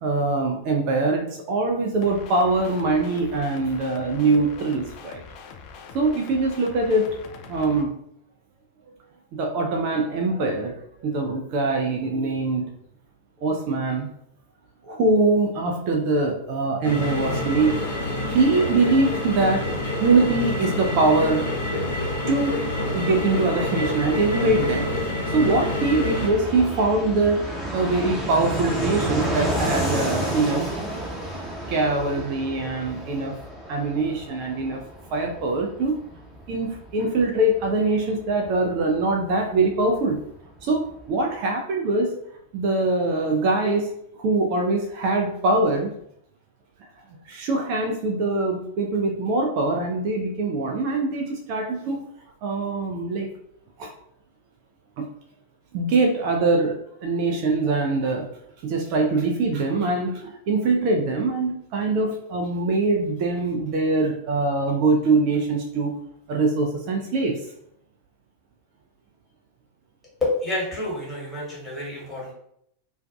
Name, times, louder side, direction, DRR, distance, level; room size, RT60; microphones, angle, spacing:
voice 1, 0.0-5.2 5.9-7.2 7.5-7.9 9.3-12.7 13.4-14.1 14.9-19.7 20.0-21.5 22.3-22.6 22.9-27.4 27.7-30.6 31.7-33.4 33.7-34.8 35.1-36.0 36.5-40.2 40.6-42.1 42.5-43.9 44.2-45.9 47.3-52.0 52.4-53.3 53.8-53.9 55.0-55.1 55.7-58.2 58.6-65.9 66.3-67.4, right 3 dB, 45° right, 1 dB, 0.4 m, -23 dB
sound 1, 2.0-7.8, left 6 dB, 40° left, 0.3 m, -43 dB
sound 2, 16.8-26.3, left 1 dB, 75° left, 0.6 m, -27 dB
Fixed-wing aircraft airplane, 21.9-40.0 40.3-40.4 40.6-41.3, right 1 dB, ahead, 0.8 m, -32 dB
voice 2, 70.2-72.3, left 2 dB, 20° left, -6 dB, 1.2 m, -28 dB
2.4 x 2.2 x 2.3 m, 0.71 s
figure-of-eight pair, 90°, 0 cm